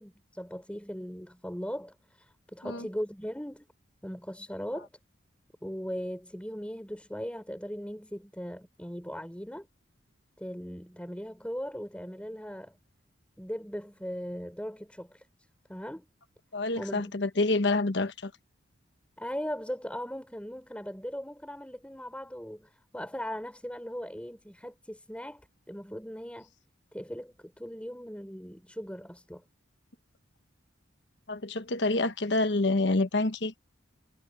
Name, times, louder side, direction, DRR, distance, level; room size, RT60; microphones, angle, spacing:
voice 1, 0.0-3.7 4.0-4.9 5.6-9.7 10.4-12.8 13.4-16.1 16.8-17.2 19.2-26.5 26.9-29.4, equal, 5° left, 4.1 m, -39 dB
voice 2, 16.5-18.3 31.3-33.6, left 2 dB, 60° left, 1.2 m, -27 dB
head